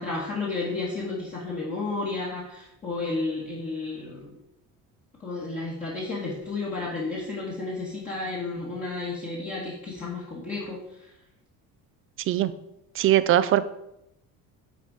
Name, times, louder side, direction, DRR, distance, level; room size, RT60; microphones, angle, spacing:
voice 1, 0.0-4.3 5.2-11.1, left 3 dB, 20° left, -5 dB, 1.5 m, -32 dB
voice 2, 13.0-13.6, right 12 dB, 40° right, 14 dB, 0.4 m, -20 dB
9.4 x 4.2 x 4.8 m, 0.83 s
cardioid pair, 165°, 34 cm